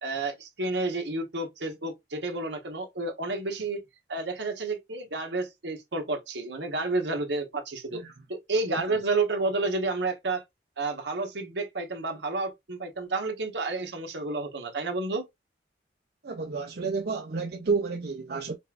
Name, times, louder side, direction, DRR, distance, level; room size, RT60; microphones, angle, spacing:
voice 1, 0.0-3.8 4.1-8.0 8.3-10.4 10.8-15.2, right 3 dB, 70° right, 1.2 m, -30 dB
voice 2, 16.2-18.5, right 4 dB, 55° right, 0.5 m, -30 dB
5.2 x 2.5 x 2.3 m
head